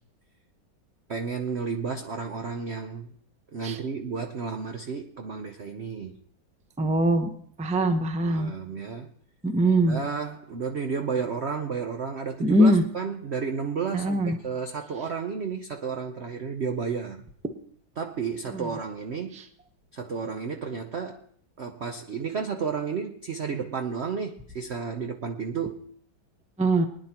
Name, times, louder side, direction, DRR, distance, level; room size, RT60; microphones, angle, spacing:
voice 1, 1.1-3.1 3.5-6.2 8.3-9.1 9.8-17.2 18.0-19.4 19.9-21.2 21.6-25.8, right 5 dB, 65° right, 5 dB, 0.6 m, -32 dB
voice 2, 6.8-7.3 7.6-8.5 9.4-10.0 12.4-12.8 13.9-14.4 17.4-17.5 18.5-18.7 19.3-19.4 26.6-26.9, right 1 dB, 10° right, 7 dB, 0.4 m, -22 dB
24.0 x 10.0 x 2.9 m, 0.62 s
omnidirectional pair, 2.1 m